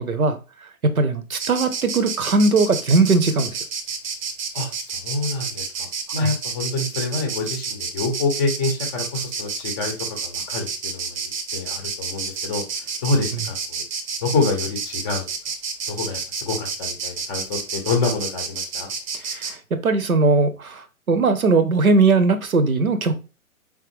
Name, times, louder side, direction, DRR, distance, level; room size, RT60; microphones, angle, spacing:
voice 1, 0.0-3.6 6.2-6.3 19.1-23.1, right 3 dB, 80° right, 10 dB, 0.9 m, -20 dB
Insect, 1.4-19.5, right 5 dB, 35° right, 0.7 m, -30 dB
voice 2, 4.5-5.9 6.1-11.2 11.5-13.8 14.2-15.2 15.9-18.9, left 3 dB, 15° left, 3 dB, 0.6 m, -26 dB
4.5 x 3.6 x 3.0 m, 0.32 s
figure-of-eight pair, 125°, 42 cm